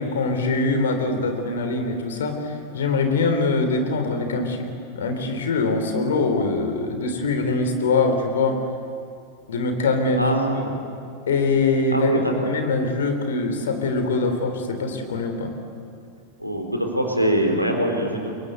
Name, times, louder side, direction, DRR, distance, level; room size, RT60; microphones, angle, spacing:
voice 1, 0.0-2.4 2.7-4.7 4.9-8.6 9.5-10.2 11.3-15.5, left 3 dB, 65° left, 6 dB, 3.5 m, -23 dB
voice 2, 10.2-10.7 11.9-12.3 16.4-18.3, right 1 dB, 90° left, 2 dB, 4.0 m, -23 dB
29.5 x 22.5 x 8.1 m, 2.4 s
figure-of-eight pair, 90°, 0 cm